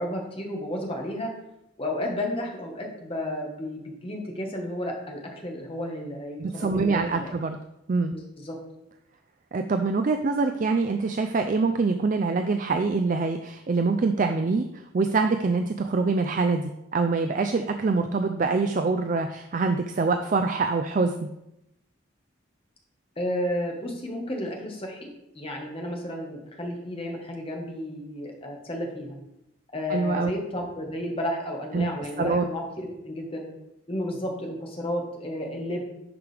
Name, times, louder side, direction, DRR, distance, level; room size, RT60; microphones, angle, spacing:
voice 1, 0.0-1.3 1.8-7.3 8.1-8.6 23.2-25.1 25.3-29.1 29.7-33.5 33.9-35.8, left 1 dB, 30° left, 0 dB, 1.4 m, -32 dB
voice 2, 6.4-7.6 7.9-8.1 9.5-21.3 29.9-30.3 31.7-31.9 32.2-32.4, right 4 dB, 40° right, 7 dB, 0.4 m, -25 dB
10.5 x 5.0 x 3.4 m, 0.85 s
head